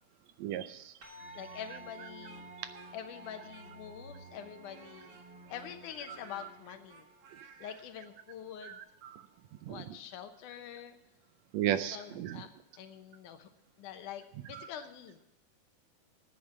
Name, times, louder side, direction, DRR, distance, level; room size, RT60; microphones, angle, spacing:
voice 1, 0.4-0.9 6.4-6.5 8.6-9.3 9.6-9.8 11.5-12.4 14.5-14.7, right 11 dB, 80° right, 12 dB, 1.6 m, -35 dB
sound 1, 1.0-9.7, right 2 dB, 40° right, 4.1 m, -56 dB
sound 2, 1.1-7.2, right 1 dB, 20° right, 3.1 m, -54 dB
Speech, 1.1-4.0 4.6-7.9, right 5 dB, 60° right, 2.6 m, -57 dB
voice 2, 1.4-2.5 2.9-5.2 5.5-7.1 7.6-8.8 9.7-11.0 11.7-13.5 13.8-15.2, left 9 dB, 90° left, 8 dB, 2.5 m, -46 dB
9.8 x 9.4 x 8.3 m, 0.85 s
omnidirectional pair, 3.5 m